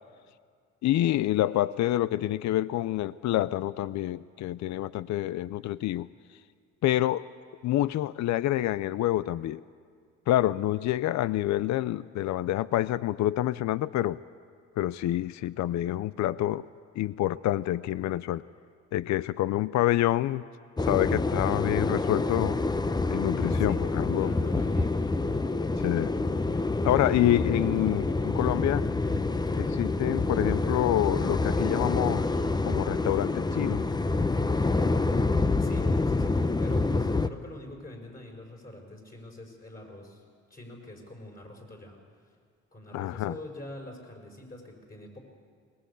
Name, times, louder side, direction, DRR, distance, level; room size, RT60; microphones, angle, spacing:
voice 1, 0.8-6.1 6.8-7.3 7.6-9.6 10.3-14.2 14.8-16.6 17.0-18.4 18.9-20.4 20.8-22.6 23.1-24.3 25.8-26.1 26.8-28.9 29.5-32.2 32.6-33.8 42.9-43.3, left 14 dB, 70° left, 18 dB, 0.5 m, -27 dB
sound 1, 20.8-37.3, left 3 dB, 15° left, 0.7 m, -27 dB
voice 2, 23.7-24.9 35.4-40.2 40.5-42.3 42.7-45.2, left 1 dB, 30° left, 1 dB, 5.3 m, -45 dB
21.5 x 19.5 x 8.4 m, 2.1 s
cardioid pair, 90°, 30 cm